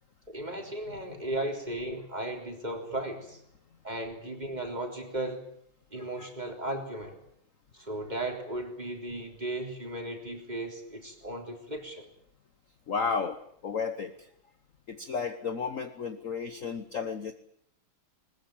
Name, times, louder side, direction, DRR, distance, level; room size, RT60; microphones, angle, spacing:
voice 1, 0.3-3.4 3.8-5.5 5.9-7.2 7.7-12.1, right 1 dB, 20° right, 3 dB, 3.8 m, -36 dB
voice 2, 12.9-14.3 14.9-17.3, left 5 dB, 45° left, 9 dB, 1.3 m, -33 dB
21.5 x 20.5 x 9.0 m, 0.70 s
omnidirectional pair, 2.3 m